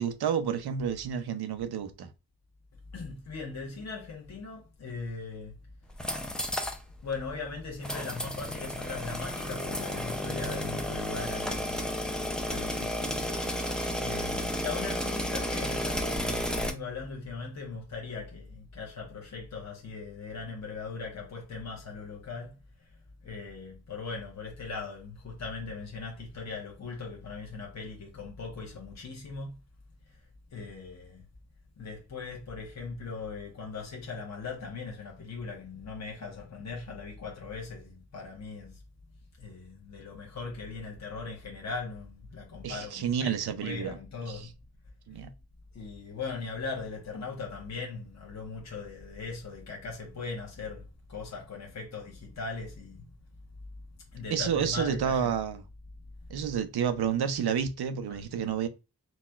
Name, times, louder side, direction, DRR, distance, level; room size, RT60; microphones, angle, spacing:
voice 1, 0.0-2.1 42.6-44.0 44.3-44.5 45.1-45.3 54.3-55.6 56.3-58.7, right 8 dB, 80° right, 0.5 m, -30 dB
voice 2, 2.9-5.6 7.0-11.8 12.5-13.6 14.0-22.6 23.2-29.5 30.5-31.2 31.8-38.8 39.4-44.5 45.7-53.1 54.1-55.3 58.1-58.2, left 4 dB, 45° left, 0.8 m, -39 dB
sound 1, 5.9-6.8 7.1-7.2 7.8-16.7, equal, ahead, 0.3 m, -32 dB
4.1 x 2.1 x 2.2 m
wide cardioid pair, 140°, 38 cm